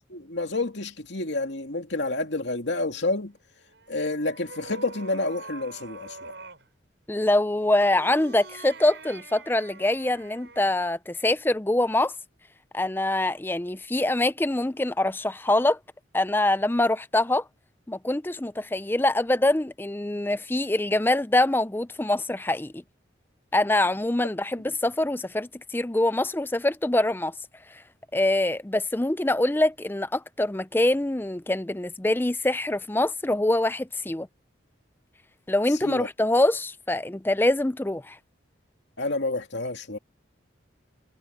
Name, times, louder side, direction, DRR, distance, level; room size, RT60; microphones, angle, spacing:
voice 1, 0.1-3.3 3.9-6.3 35.8-36.1 39.0-40.0, left 2 dB, 65° left, 2.5 m, -29 dB
sound 1, 3.7-6.7 7.6-10.8, right 3 dB, 65° right, 6.1 m, -45 dB
voice 2, 7.1-12.1 12.7-15.8 16.1-17.4 17.9-22.8 23.5-27.3 27.7-27.8 28.1-34.3 35.5-38.2, left 1 dB, 10° left, 0.5 m, -24 dB
head